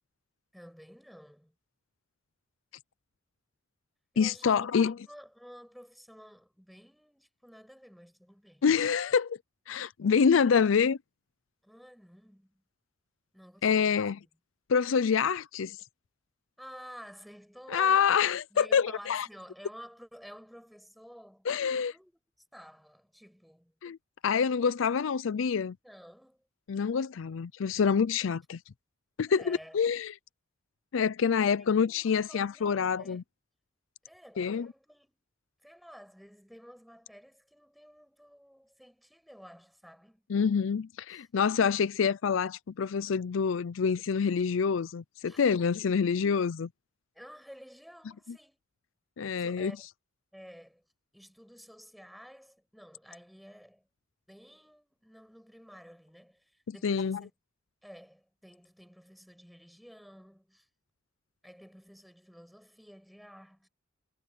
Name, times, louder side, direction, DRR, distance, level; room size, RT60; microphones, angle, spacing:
voice 1, 0.5-1.6 4.1-8.7 11.6-12.6 13.3-14.3 16.6-18.1 18.5-22.2 22.5-23.7 25.8-26.4 29.3-29.8 31.6-33.2 34.0-35.2 35.6-40.2 41.1-41.3 45.3-45.4 47.1-48.6 49.4-49.8 50.3-50.8 51.1-53.9 54.3-57.3 57.8-60.7 61.4-63.7, equal, ahead, 7.4 m, -52 dB
voice 2, 4.2-4.9 8.6-9.4 9.7-11.0 13.6-14.2 14.7-15.8 17.7-19.3 21.5-21.9 23.8-24.0 24.2-25.8 26.7-28.6 29.2-30.1 30.9-33.2 34.4-34.7 40.3-46.7 49.2-49.7 56.8-57.2, left 6 dB, 75° left, 0.5 m, -26 dB
head